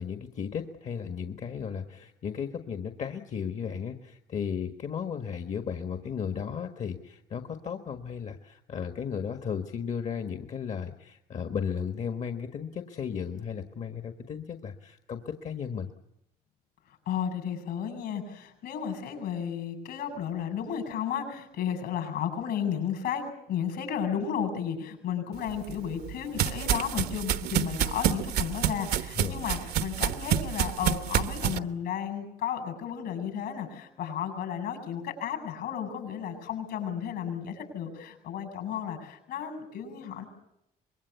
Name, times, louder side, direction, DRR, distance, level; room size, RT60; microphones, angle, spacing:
voice 1, 0.0-15.9 29.1-29.4, left 7 dB, 45° left, 7 dB, 1.5 m, -35 dB
voice 2, 17.1-40.3, left 8 dB, 75° left, 7 dB, 7.9 m, -33 dB
sound 1, 25.5-31.6, right 10 dB, 70° right, 1.1 m, -28 dB
25.0 x 21.5 x 8.3 m, 0.83 s
cardioid pair, 110°, 17 cm